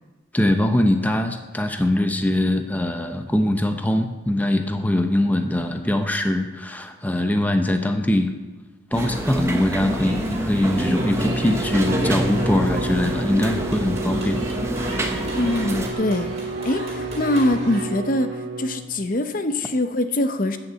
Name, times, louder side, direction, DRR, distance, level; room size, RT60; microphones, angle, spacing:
voice 1, 0.3-8.3 8.9-14.4, left 1 dB, 10° left, 6 dB, 0.7 m, -22 dB
sound 1, 8.9-15.9, right 1 dB, 15° right, 1.1 m, -27 dB
sound 2, 8.9-17.8, right 1 dB, 30° right, 4.2 m, -37 dB
Bowed string instrument, 10.8-19.1, right 2 dB, 80° right, 1.3 m, -31 dB
voice 2, 15.4-16.3 16.6-18.3 18.6-20.6, left 1 dB, 45° left, 9 dB, 0.8 m, -23 dB
13.0 x 6.8 x 8.3 m, 1.2 s
head